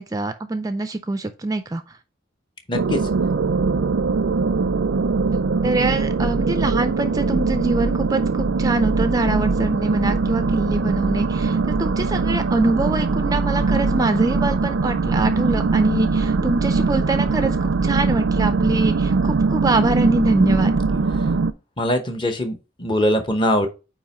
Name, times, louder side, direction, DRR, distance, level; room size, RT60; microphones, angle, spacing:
voice 1, 0.0-2.0 5.6-20.8, right 2 dB, 20° right, 9 dB, 0.4 m, -24 dB
voice 2, 2.7-3.0 21.8-23.7, left 1 dB, 25° left, 6 dB, 0.9 m, -22 dB
sound 1, 2.7-21.5, right 4 dB, 80° right, 0.5 m, -21 dB
8.7 x 3.0 x 4.3 m, 0.30 s
head